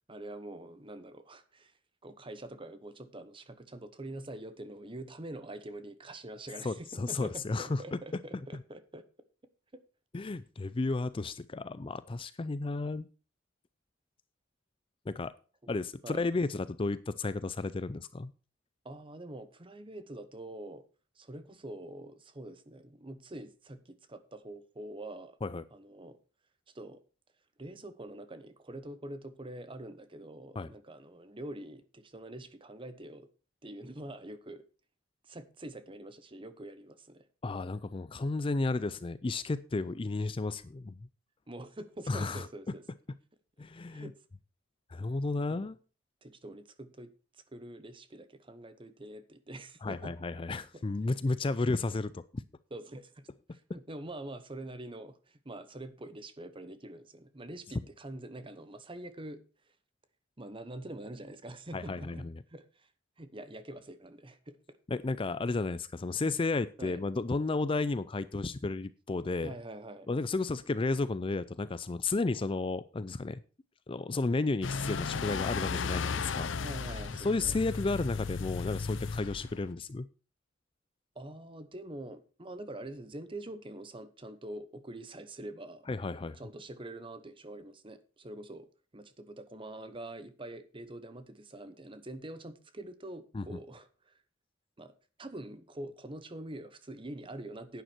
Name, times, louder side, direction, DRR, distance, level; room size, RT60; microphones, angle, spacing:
voice 1, 0.1-1.7 2.0-9.0 9.7-9.8 15.6-15.7 16.0-16.3 18.8-20.8 21.2-25.4 25.7-26.2 26.7-27.0 27.6-33.3 33.6-34.6 35.2-37.3 41.5-42.8 43.9-44.1 45.5-45.6 46.2-47.1 47.5-50.1 50.7-50.8 52.7-59.4 60.4-62.9 63.2-64.6 66.8-67.0 69.4-70.1 76.6-77.5 81.1-85.9 86.4-88.7 88.9-94.1 94.8-94.9 95.2-97.8, right 1 dB, 25° right, 1.0 m, -45 dB
voice 2, 6.6-8.0 10.1-13.1 15.1-15.3 15.7-18.3 25.4-25.6 30.6-30.7 37.4-41.0 42.1-42.5 43.6-44.1 44.9-45.8 49.8-52.4 61.7-62.3 64.9-69.6 70.1-73.4 73.9-76.5 77.2-80.1 85.9-86.4 93.3-93.4, left 3 dB, 25° left, 0.4 m, -33 dB
sound 1, 74.6-79.7, left 5 dB, 70° left, 0.6 m, -35 dB
11.0 x 9.2 x 4.5 m
head